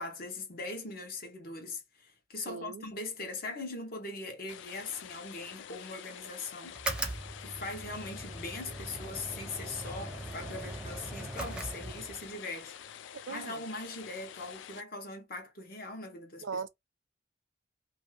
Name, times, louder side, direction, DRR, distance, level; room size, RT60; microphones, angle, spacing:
voice 1, 0.0-6.8 7.4-12.8 13.3-16.5, left 3 dB, 50° left, 0.9 m, -41 dB
voice 2, 2.5-2.9 13.1-13.6 16.4-16.7, right 5 dB, 85° right, 0.4 m, -39 dB
sound 1, 4.5-14.8, left 9 dB, 75° left, 0.3 m, -48 dB
sound 2, 6.7-12.4, right 1 dB, 5° right, 0.5 m, -40 dB
2.6 x 2.3 x 3.1 m
head